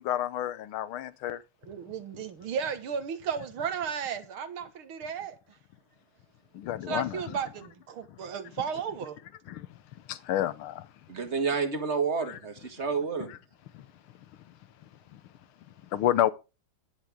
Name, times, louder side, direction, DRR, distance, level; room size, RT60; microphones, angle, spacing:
voice 1, 0.0-1.4 6.5-7.3 9.5-9.7 10.1-10.9 12.3-12.4 13.7-13.8 15.9-16.3, left 12 dB, 80° left, 1.7 m, -29 dB
voice 2, 1.6-5.4 6.9-9.2, right 7 dB, 80° right, 2.3 m, -34 dB
voice 3, 11.1-13.3, right 5 dB, 35° right, 2.0 m, -29 dB
12.0 x 10.5 x 3.6 m
omnidirectional pair, 2.3 m